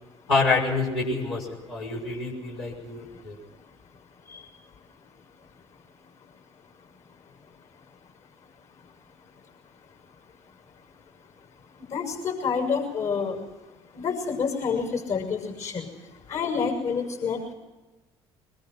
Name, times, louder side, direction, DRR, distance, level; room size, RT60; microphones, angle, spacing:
voice 1, 0.3-3.4, left 3 dB, 80° left, -5 dB, 5.8 m, -27 dB
voice 2, 11.9-13.4 13.9-15.9 16.3-17.5, left 5 dB, 55° left, 3 dB, 6.4 m, -28 dB
23.5 x 21.5 x 5.9 m, 1.1 s
hypercardioid pair, 55°, 14 cm